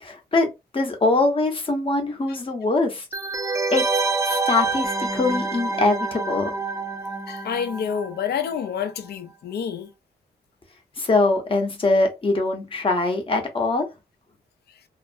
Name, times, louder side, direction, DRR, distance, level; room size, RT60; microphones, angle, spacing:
voice 1, 0.0-3.0 3.7-3.8 4.2-6.5 11.0-13.9, left 2 dB, 30° left, 0.7 m, -22 dB
sound 1, 3.1-8.6 8.9-9.0, right 3 dB, 20° right, 0.3 m, -27 dB
voice 2, 7.3-9.9, left 7 dB, 75° left, 0.5 m, -28 dB
2.4 x 2.0 x 2.5 m
wide cardioid pair, 120°, 17 cm